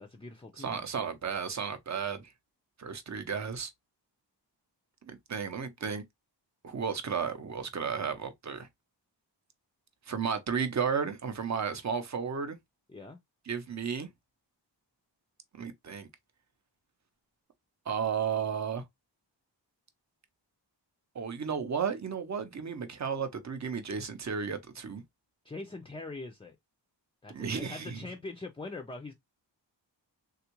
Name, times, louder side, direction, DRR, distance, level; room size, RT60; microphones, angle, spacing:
voice 1, 0.0-1.1 12.9-13.2 25.4-26.6 27.2-29.1, left 3 dB, 15° left, 0.4 m, -43 dB
voice 2, 0.6-2.3 2.8-3.7 5.0-6.0 6.6-8.7 10.1-12.6 13.5-14.1 15.5-16.1 17.9-18.8 21.1-25.0 27.3-28.0, right 6 dB, 40° right, 0.6 m, -33 dB
3.5 x 2.4 x 2.9 m
wide cardioid pair, 100°, 44 cm